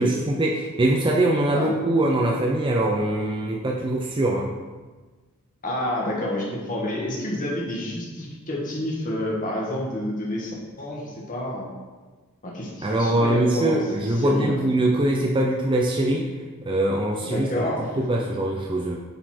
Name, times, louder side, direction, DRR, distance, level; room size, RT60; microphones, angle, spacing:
voice 1, 0.0-4.5 12.8-16.3 16.6-17.5 18.0-19.0, right 1 dB, 25° right, -1 dB, 0.5 m, -22 dB
voice 2, 5.6-11.7 12.4-14.6 17.2-17.9, left 1 dB, 40° left, -3 dB, 1.6 m, -29 dB
9.0 x 4.2 x 4.4 m, 1.3 s
head